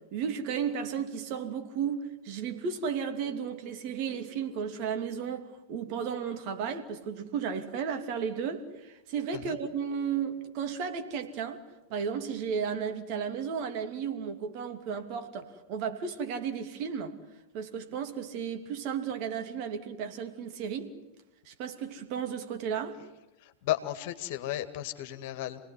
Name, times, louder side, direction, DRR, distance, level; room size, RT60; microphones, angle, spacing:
voice 1, 0.1-11.6 11.9-17.2 17.5-20.9 21.4-23.0, right 7 dB, 45° right, 2.9 m, -34 dB
voice 2, 23.4-25.6, left 13 dB, 50° left, 2.1 m, -34 dB
29.0 x 19.0 x 9.7 m
figure-of-eight pair, 90°, 0 cm